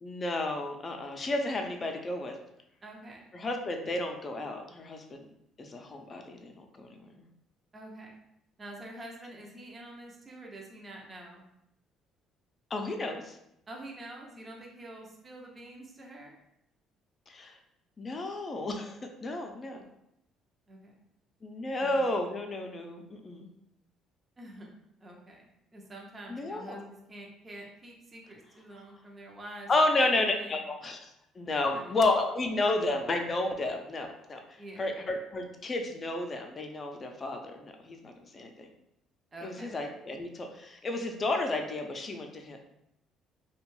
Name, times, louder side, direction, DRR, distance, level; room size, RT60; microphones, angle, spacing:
voice 1, 0.0-2.3 3.3-5.3 5.6-6.9 7.1-7.3 12.7-13.4 17.3-17.6 18.0-19.8 21.4-23.5 26.3-26.9 29.7-31.1 31.4-34.4 34.8-38.7 39.4-42.6, left 2 dB, 35° left, 4 dB, 0.5 m, -32 dB
voice 2, 2.8-3.3 7.7-8.1 8.6-11.5 13.7-16.4 20.7-20.9 21.6-22.1 24.4-24.7 25.0-30.6 31.7-31.9 34.6-34.8 39.3-39.8, right 1 dB, 30° right, -1 dB, 0.6 m, -47 dB
2.5 x 2.2 x 3.1 m, 0.79 s
supercardioid pair, 70°, 0 cm